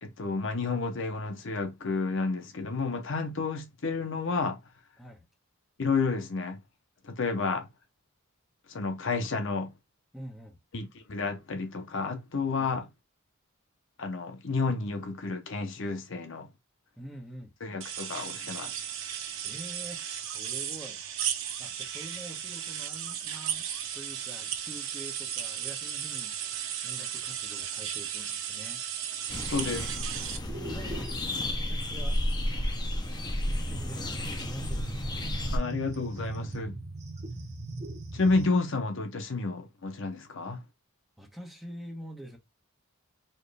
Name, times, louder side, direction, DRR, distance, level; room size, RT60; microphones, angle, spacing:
voice 1, 0.0-4.6 5.8-6.6 7.0-7.7 8.7-9.7 10.7-12.8 14.0-16.5 17.6-18.7 29.5-29.9 35.5-36.8 38.1-40.6, left 3 dB, 55° left, 0.7 m, -31 dB
voice 2, 10.1-10.6 12.6-12.7 17.0-17.5 19.4-21.0 21.6-23.7 23.9-26.3 26.8-28.8 30.6-31.1 31.5-32.2 33.5-35.3 41.2-42.4, right 1 dB, ahead, 1.1 m, -46 dB
sound 1, 17.8-30.4, right 9 dB, 60° right, 0.8 m, -35 dB
sound 2, 29.3-35.6, left 1 dB, 20° left, 0.5 m, -32 dB
sound 3, 30.4-38.5, right 2 dB, 30° right, 0.7 m, -40 dB
4.3 x 3.0 x 3.3 m
head